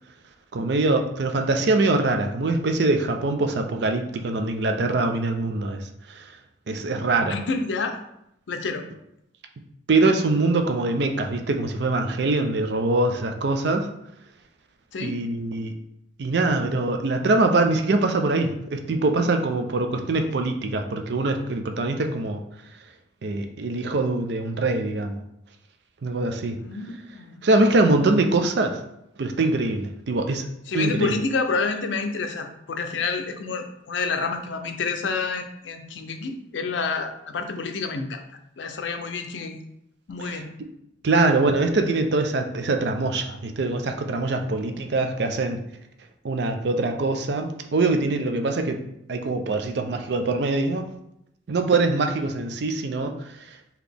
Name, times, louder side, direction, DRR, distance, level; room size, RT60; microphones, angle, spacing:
voice 1, 0.5-5.8 6.1-6.3 6.7-7.4 9.9-13.9 15.0-15.8 16.2-22.4 23.2-25.2 26.0-26.6 27.4-28.8 29.2-30.5 30.7-31.1 40.2-40.4 41.0-45.6 46.2-48.8 49.1-50.9 51.5-53.6, right 2 dB, 65° right, 6 dB, 0.5 m, -23 dB
voice 2, 7.2-8.0 8.5-8.8 14.9-15.2 26.6-27.5 30.7-38.2 38.6-39.6 40.1-40.5, left 4 dB, 80° left, 6 dB, 0.5 m, -28 dB
4.0 x 2.9 x 3.4 m, 0.79 s
head